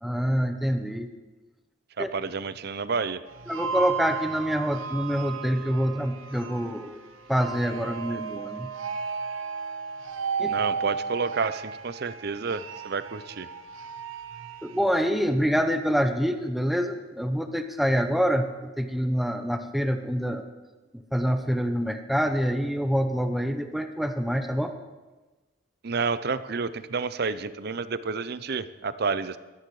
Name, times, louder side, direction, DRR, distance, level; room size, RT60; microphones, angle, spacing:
voice 1, 0.0-1.1 2.0-2.1 3.5-7.0 7.3-8.7 10.4-10.6 14.6-20.4 20.9-24.7, equal, ahead, 7 dB, 0.8 m, -26 dB
voice 2, 2.0-3.2 10.5-13.5 25.8-29.4, right 4 dB, 50° right, 14 dB, 0.6 m, -30 dB
sound 1, 3.3-14.8, right 6 dB, 80° right, 0.9 m, -34 dB
22.5 x 9.7 x 4.8 m, 1.2 s
head